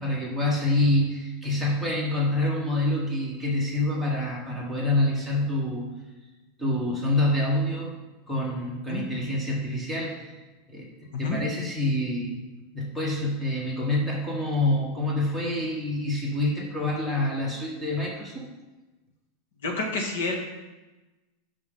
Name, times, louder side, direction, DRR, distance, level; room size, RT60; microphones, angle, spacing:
voice 1, 0.0-5.9 6.6-7.9 8.3-10.3 10.7-10.9 11.2-12.4 12.7-18.5, left 1 dB, ahead, -4 dB, 1.4 m, -26 dB
voice 2, 19.6-20.4, left 3 dB, 90° left, 2 dB, 1.8 m, -29 dB
12.0 x 5.1 x 3.7 m, 1.1 s
supercardioid pair, 180°, 0 cm